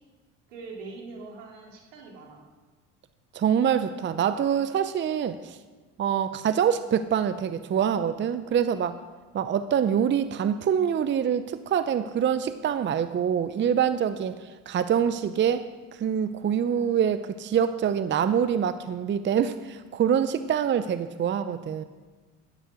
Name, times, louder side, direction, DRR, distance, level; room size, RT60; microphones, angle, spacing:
voice 1, 0.5-2.4, right 3 dB, 80° right, 0 dB, 3.1 m, -43 dB
voice 2, 3.3-5.6 6.0-9.0 9.3-21.8, right 8 dB, 30° right, 12 dB, 0.7 m, -25 dB
12.5 x 10.0 x 6.5 m, 1.4 s
hypercardioid pair, 70°, 37 cm